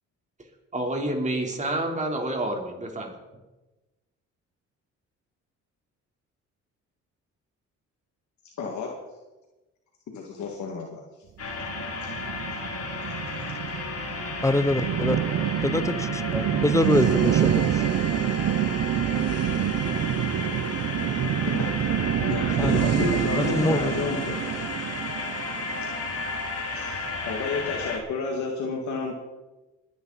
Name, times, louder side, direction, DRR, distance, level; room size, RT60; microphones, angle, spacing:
voice 1, 0.7-3.1, right 1 dB, 25° right, 1 dB, 3.5 m, -28 dB
voice 2, 8.6-8.9 10.1-11.0 12.2-12.3 21.5-21.6 22.1-24.5 26.8-29.1, left 4 dB, 70° left, 0 dB, 2.1 m, -31 dB
sound 1, 11.4-28.0, left 4 dB, 50° left, 3.0 m, -33 dB
sound 2, 11.4-26.9, right 11 dB, 55° right, 0.6 m, -27 dB
voice 3, 14.4-15.2 15.6-17.9 22.6-23.1 23.4-23.9, left 2 dB, 10° left, 14 dB, 0.8 m, -25 dB
21.5 x 9.8 x 4.1 m, 1.1 s
cardioid pair, 90°, 30 cm